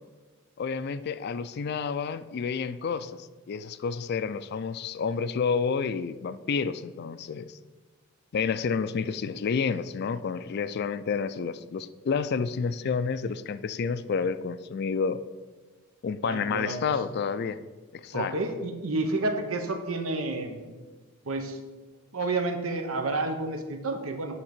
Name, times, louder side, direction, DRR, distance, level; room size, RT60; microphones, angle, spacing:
voice 1, 0.6-7.6 8.3-15.2 16.0-17.6 17.9-18.3, left 5 dB, 50° left, 14 dB, 0.3 m, -30 dB
voice 2, 16.3-16.9 18.1-20.6 21.3-21.6 22.1-24.4, right 2 dB, 90° right, 6 dB, 1.0 m, -30 dB
8.6 x 3.6 x 6.6 m, 1.3 s
head